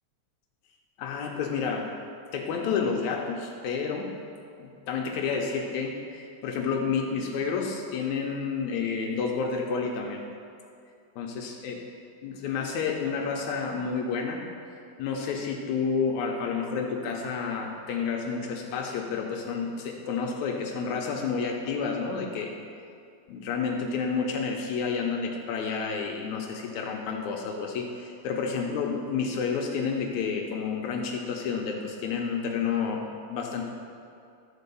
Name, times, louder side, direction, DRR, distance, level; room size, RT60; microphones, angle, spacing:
voice 1, 1.0-1.9 2.3-4.1 4.6-10.2 11.2-11.8 12.2-14.4 15.0-22.5 23.3-33.6, left 5 dB, 80° left, 1 dB, 2.1 m, -30 dB
12.0 x 4.6 x 6.8 m, 2.4 s
omnidirectional pair, 3.4 m